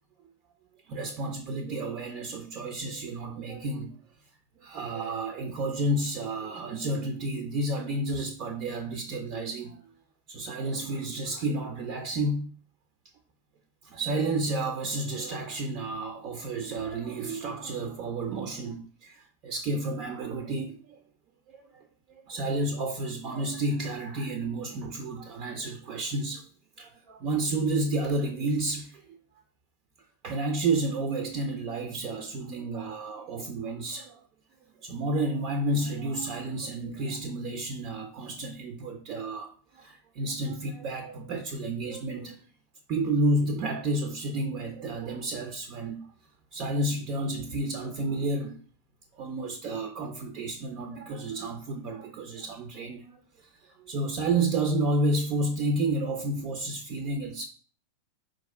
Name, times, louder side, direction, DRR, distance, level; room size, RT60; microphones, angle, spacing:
voice 1, 0.9-4.0 4.6-9.8 10.3-12.5 13.8-21.0 21.5-21.8 22.3-26.4 26.8-29.2 30.2-34.2 34.8-42.4 42.9-46.0 46.5-48.6 49.2-53.0 53.6-57.4, right 2 dB, 40° right, 0.6 m, -31 dB
4.5 x 2.6 x 4.4 m
figure-of-eight pair, 90°, 0 cm